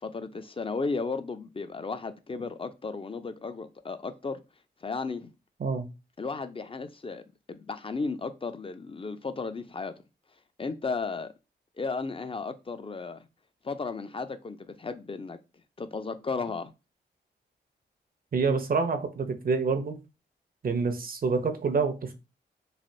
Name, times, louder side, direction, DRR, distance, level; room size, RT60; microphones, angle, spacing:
voice 1, 0.0-4.4 4.8-5.3 6.2-9.9 10.6-11.3 11.8-13.3 13.6-15.4 15.8-16.7, left 4 dB, 30° left, 0.5 m, -34 dB
voice 2, 18.3-20.0 20.6-22.1, right 4 dB, 50° right, 0.6 m, -27 dB
3.3 x 2.4 x 2.6 m
cardioid pair, 50°, 19 cm